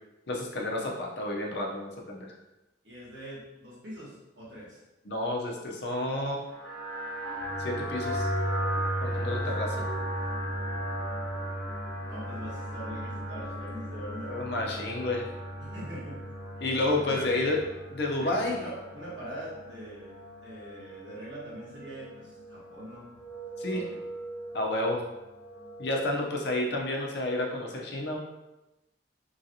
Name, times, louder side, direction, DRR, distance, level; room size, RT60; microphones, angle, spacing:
voice 1, 0.3-2.3 5.1-6.6 7.6-8.3 9.0-9.7 14.3-15.3 16.6-17.6 18.0-18.6 23.6-23.8 24.5-25.0 25.8-28.2, left 2 dB, 65° left, 0 dB, 0.6 m, -30 dB
voice 2, 2.8-4.8 9.1-9.4 12.1-14.5 15.6-16.1 17.1-17.6 18.2-20.1 20.4-23.1 23.7-24.0, right 1 dB, 75° right, -6 dB, 1.3 m, -42 dB
sound 1, 6.5-26.2, equal, 5° left, 0.7 m, -36 dB
3.0 x 2.7 x 2.7 m, 0.99 s
head